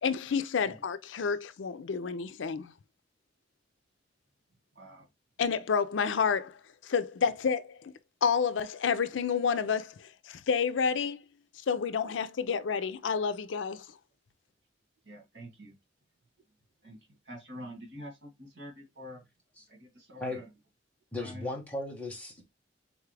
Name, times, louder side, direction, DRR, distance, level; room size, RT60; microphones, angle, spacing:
voice 1, 0.0-2.7 5.4-7.9 8.2-11.2 11.7-13.9, left 6 dB, 85° left, 0.5 m, -29 dB
voice 2, 4.7-5.1 15.1-15.7 16.8-17.0 17.3-19.2 19.7-20.5 21.2-21.4, equal, 70° right, 1.8 m, -46 dB
voice 3, 21.1-22.4, left 2 dB, 10° left, 1.3 m, -36 dB
4.0 x 3.5 x 3.3 m
head